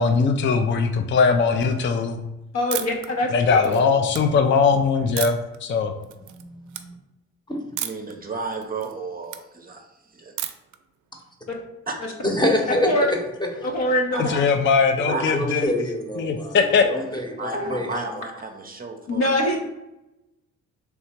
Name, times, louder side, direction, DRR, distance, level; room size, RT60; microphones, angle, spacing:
voice 1, 0.0-2.2 3.3-5.9 14.2-15.7 16.2-16.8, left 5 dB, 40° left, 6 dB, 0.4 m, -20 dB
voice 2, 2.5-3.8 12.8-13.1 13.6-14.3 17.5-17.7 19.1-19.6, left 1 dB, 60° left, 0 dB, 0.8 m, -23 dB
sound 1, 2.7-3.1 3.5-4.2 5.2-5.6 6.0-6.4 6.7-6.8 7.8-8.1 8.5-9.4 10.4-10.8, right 11 dB, 75° right, 0.5 m, -32 dB
voice 3, 6.2-6.9 7.5-7.6 12.2-13.7 15.0-18.2, left 1 dB, 15° left, 1 dB, 0.9 m, -27 dB
voice 4, 7.8-10.3 11.9-12.0 14.1-14.5 15.0-15.6 17.0-17.1 17.4-19.4, right 3 dB, 30° right, 4 dB, 0.6 m, -33 dB
3.4 x 2.7 x 4.3 m, 0.93 s
cardioid pair, 90°, 30 cm